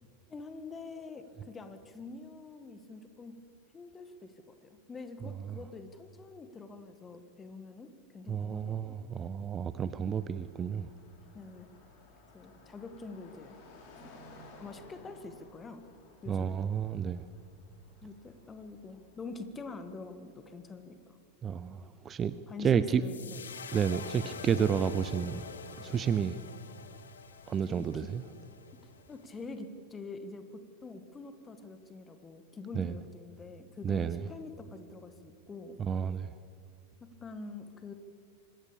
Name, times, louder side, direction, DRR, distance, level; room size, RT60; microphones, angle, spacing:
voice 1, 0.3-3.4 3.7-9.0 11.3-11.7 12.3-13.6 14.0-14.1 14.6-15.9 16.2-16.7 18.0-21.2 22.5-23.4 27.6-28.1 28.7-35.8 37.0-37.9, left 3 dB, 15° left, 9 dB, 1.9 m, -46 dB
voice 2, 8.3-10.9 16.3-17.3 21.4-22.3 22.6-23.0 23.7-25.4 25.8-26.4 27.5-28.2 32.8-32.9 33.8-34.2 35.8-36.3, right 7 dB, 25° right, 14 dB, 0.7 m, -31 dB
Car passing by, 9.8-20.9, left 2 dB, 45° left, 4.9 m, -57 dB
sound 1, 23.0-29.3, left 6 dB, 70° left, 1.6 m, -46 dB
25.0 x 20.5 x 7.0 m, 2.3 s
figure-of-eight pair, 90°, 0 cm